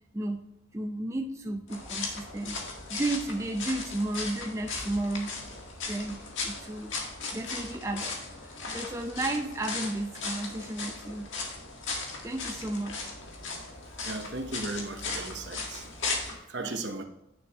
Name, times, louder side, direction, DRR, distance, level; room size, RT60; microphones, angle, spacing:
voice 1, 0.1-0.5 0.7-2.6 2.9-5.4 5.9-7.0 7.3-8.1 8.5-11.3 12.2-13.1 16.6-16.8, right 2 dB, 15° right, 0.4 m, -33 dB
sound 1, 1.7-16.3, left 3 dB, 70° left, 1.7 m, -37 dB
voice 2, 14.0-15.9 16.5-17.0, right 2 dB, 60° right, 0.9 m, -36 dB
10.0 x 6.4 x 3.0 m
head